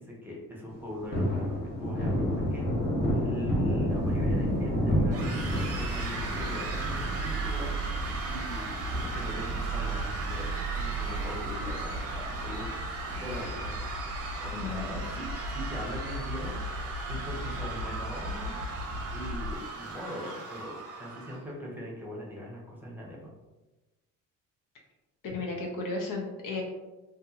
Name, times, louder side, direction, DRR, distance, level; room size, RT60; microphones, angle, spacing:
voice 1, 0.0-2.7 3.2-5.2 5.6-7.7 8.3-13.8 14.4-15.3 15.5-16.6 17.1-18.6 19.1-23.3, left 1 dB, 5° right, -4 dB, 0.9 m, -41 dB
Thunder, 0.7-11.4 11.8-11.9 12.3-13.8 14.1-14.2 14.6-15.4 15.8-15.9 16.2-16.3 18.7-19.2, equal, 25° left, 1.0 m, -31 dB
sound 1, 3.9-19.6, right 2 dB, 85° right, 0.5 m, -36 dB
sound 2, 5.1-21.4, right 3 dB, 40° right, 0.7 m, -38 dB
voice 2, 14.5-15.0 25.2-26.6, left 3 dB, 60° left, -1 dB, 0.7 m, -34 dB
2.6 x 2.5 x 2.4 m, 1.1 s
supercardioid pair, 70°, 36 cm